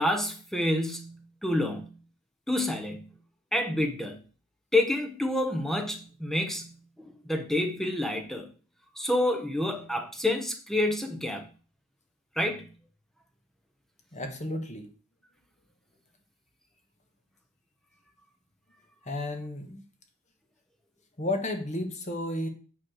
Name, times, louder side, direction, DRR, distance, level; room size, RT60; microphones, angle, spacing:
voice 1, 0.0-2.0 2.5-3.1 3.5-4.2 4.7-8.5 9.0-11.5 12.4-12.7, left 1 dB, ahead, 0.9 m, -28 dB
voice 2, 14.1-14.9 19.0-19.8 21.2-22.5, left 1 dB, 35° left, 1.2 m, -32 dB
9.0 x 3.2 x 6.4 m
head